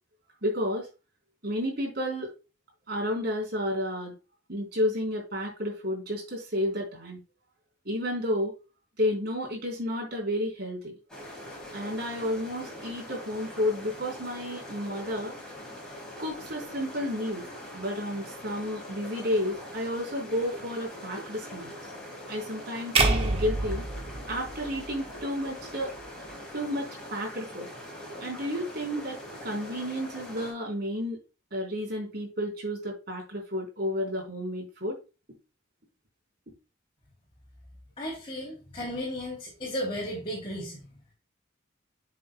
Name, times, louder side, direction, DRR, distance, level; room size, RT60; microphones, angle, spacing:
voice 1, 0.4-0.9 1.4-2.3 2.9-4.1 4.5-7.2 7.9-8.5 9.0-10.9 11.7-15.3 16.2-17.4 17.7-21.7 22.3-23.8 24.3-25.9 26.5-27.7 28.2-31.2 31.5-35.0, left 1 dB, 55° right, -1 dB, 3.8 m, -31 dB
sound 1, 11.1-30.5, left 1 dB, 5° left, 4.6 m, -43 dB
sound 2, 23.0-25.2, right 3 dB, 30° right, 1.2 m, -27 dB
voice 2, 38.0-40.8, equal, 30° left, -4 dB, 3.0 m, -34 dB
9.7 x 6.6 x 2.2 m, 0.31 s
head